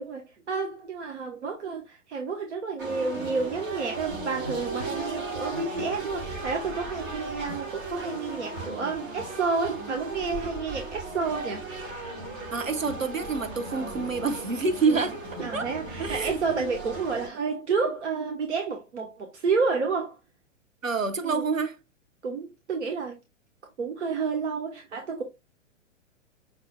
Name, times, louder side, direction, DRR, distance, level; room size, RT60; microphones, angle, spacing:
voice 1, 0.0-11.6 14.9-15.0 15.4-20.2 21.2-21.4 22.2-23.1 23.8-25.2, right 4 dB, 60° right, 1.1 m, -30 dB
sound 1, 2.8-17.3, right 2 dB, 30° right, 1.5 m, -37 dB
voice 2, 8.6-9.1 12.5-15.2 15.5-15.7 16.0-16.4 20.8-21.8, right 4 dB, 85° right, 0.9 m, -27 dB
6.0 x 4.0 x 2.2 m
figure-of-eight pair, 110°, 39 cm